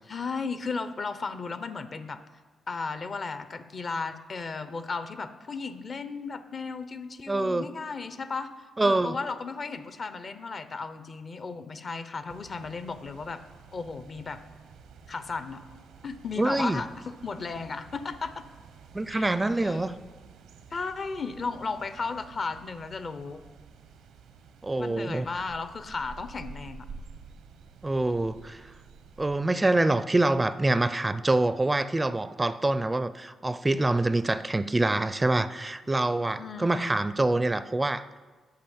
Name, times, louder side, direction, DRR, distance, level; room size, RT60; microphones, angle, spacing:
voice 1, 0.1-2.2 2.7-13.4 13.7-14.4 15.1-15.6 16.0-18.4 19.1-19.3 19.6-20.0 20.7-23.4 24.8-26.9 36.4-37.0, left 4 dB, 50° left, 11 dB, 0.8 m, -35 dB
voice 2, 7.3-7.6 8.8-9.2 16.4-16.8 18.9-19.9 24.6-25.4 27.8-28.7 29.2-38.0, right 2 dB, 20° right, 14 dB, 0.4 m, -25 dB
sound 1, 12.3-29.3, right 5 dB, 90° right, 0.8 m, -50 dB
8.7 x 5.7 x 7.2 m, 1.4 s
cardioid pair, 65°, 0 cm